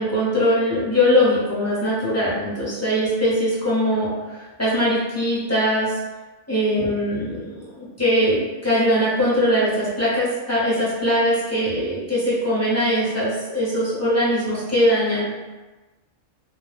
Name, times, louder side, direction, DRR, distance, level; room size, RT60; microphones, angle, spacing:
voice 1, 0.0-5.9 6.5-15.2, equal, 15° left, -9 dB, 0.7 m, -21 dB
2.3 x 2.2 x 3.2 m, 1.2 s
omnidirectional pair, 1.3 m